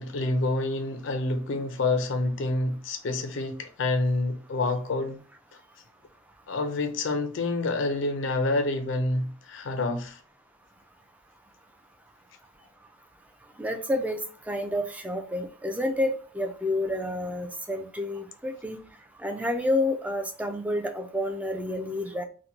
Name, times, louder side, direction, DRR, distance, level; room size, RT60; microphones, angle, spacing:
voice 1, 0.0-5.2 6.5-10.2, left 2 dB, 65° left, 0.5 m, -28 dB
voice 2, 13.6-14.2 14.5-18.8 19.2-22.2, left 1 dB, 5° right, 0.4 m, -29 dB
3.0 x 2.1 x 3.9 m
head